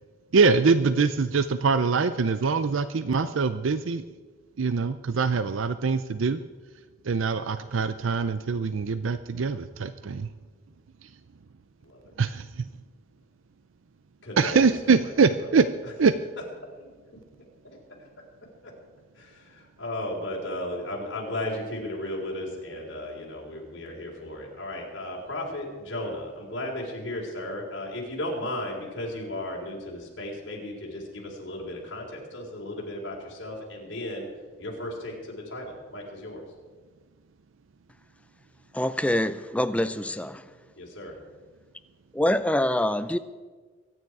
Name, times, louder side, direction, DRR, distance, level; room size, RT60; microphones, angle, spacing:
voice 1, 0.3-4.0 4.6-6.4 7.0-10.3 12.2-12.6 14.4-15.7 16.0-16.2, right 4 dB, 85° right, 12 dB, 0.5 m, -23 dB
voice 2, 14.2-16.1 16.6-16.7 17.1-18.1 18.6-18.7 19.2-34.3 34.6-36.4 40.8-41.2, left 1 dB, 65° left, -2 dB, 4.1 m, -35 dB
voice 3, 38.7-40.4 42.1-43.2, left 1 dB, 5° left, 12 dB, 0.4 m, -25 dB
23.0 x 9.6 x 4.8 m, 1.4 s
head